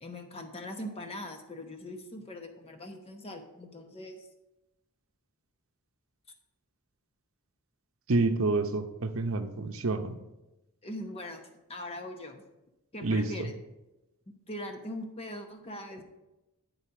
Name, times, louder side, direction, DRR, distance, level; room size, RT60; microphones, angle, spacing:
voice 1, 0.0-4.3 10.8-12.4 12.9-13.6 14.5-16.0, left 1 dB, 25° left, 4 dB, 0.9 m, -41 dB
voice 2, 8.1-10.1 13.0-13.3, right 3 dB, 60° right, 7 dB, 0.7 m, -28 dB
10.5 x 4.0 x 5.8 m, 0.97 s
head